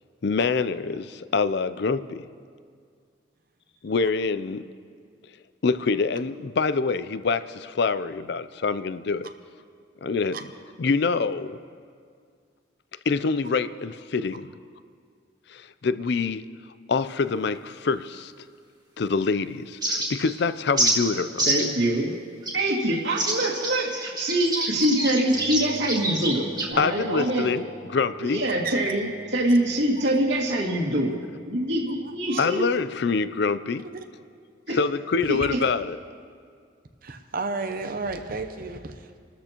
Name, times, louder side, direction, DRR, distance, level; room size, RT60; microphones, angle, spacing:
voice 1, 0.2-2.3 3.8-4.6 5.6-9.3 10.0-10.4 10.8-11.6 13.1-14.5 15.5-16.4 16.9-18.3 19.0-21.7 26.8-28.4 32.4-33.9 34.7-36.0, left 4 dB, 55° left, 14 dB, 0.4 m, -25 dB
sound 1, 19.8-20.3 20.8-21.0 21.4-21.7 22.4-22.6 23.2-26.7, right 1 dB, 20° right, 1.9 m, -26 dB
voice 2, 21.5-22.2 22.5-27.5 28.2-31.2 31.5-32.7 34.7-34.8 35.3-35.6, right 1 dB, 65° right, -3 dB, 2.3 m, -24 dB
sound 2, 25.3-34.0, right 1 dB, 90° left, 3.7 m, -48 dB
voice 3, 32.0-32.5 33.9-34.0 35.3-35.5 37.0-39.2, right 4 dB, 45° right, 6 dB, 0.7 m, -33 dB
28.5 x 13.0 x 3.0 m, 2.1 s
head